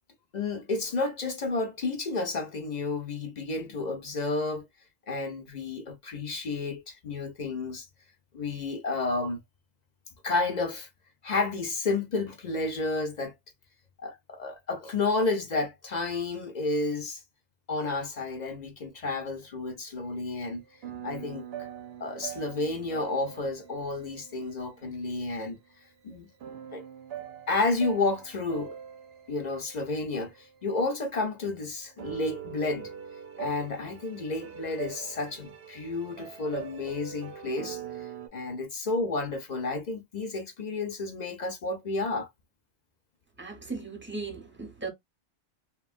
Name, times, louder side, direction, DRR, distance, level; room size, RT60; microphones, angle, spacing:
voice 1, 0.3-4.7 5.1-7.9 8.3-9.4 10.2-10.9 11.2-13.4 14.0-17.2 17.7-20.6 21.0-21.4 22.0-25.6 26.0-26.3 26.7-26.8 27.5-28.8 29.3-32.9 33.4-42.3, left 3 dB, 45° left, 0.7 m, -31 dB
sound 1, 20.8-25.3 26.4-30.5 32.0-38.3, right 9 dB, 65° right, 0.8 m, -43 dB
voice 2, 43.4-44.9, right 3 dB, 10° right, 0.8 m, -37 dB
2.9 x 2.3 x 2.4 m
omnidirectional pair, 1.2 m